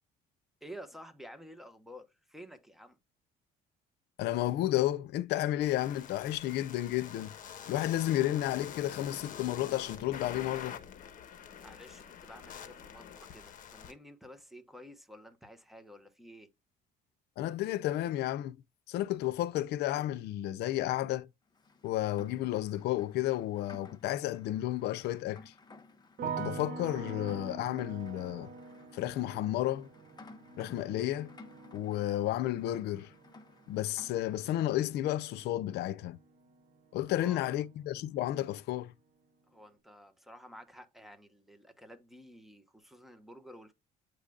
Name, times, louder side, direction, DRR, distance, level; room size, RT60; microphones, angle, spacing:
voice 1, 0.6-3.0 11.6-16.5 37.2-37.6 39.5-43.7, equal, ahead, 1.3 m, -51 dB
voice 2, 4.2-7.3 7.7-10.8 17.4-18.6 18.9-21.3 21.8-25.5 26.3-28.5 28.9-29.9 30.6-31.4 31.7-33.1 33.7-36.2 36.9-38.9, left 14 dB, 75° left, 0.6 m, -32 dB
sound 1, 5.6-13.9, left 8 dB, 50° left, 1.3 m, -46 dB
Rain, 21.5-34.8, left 3 dB, 25° left, 1.2 m, -56 dB
sound 2, 26.2-37.3 37.5-38.3, right 5 dB, 60° right, 1.4 m, -45 dB
9.1 x 5.0 x 2.4 m
cardioid pair, 110°, 17 cm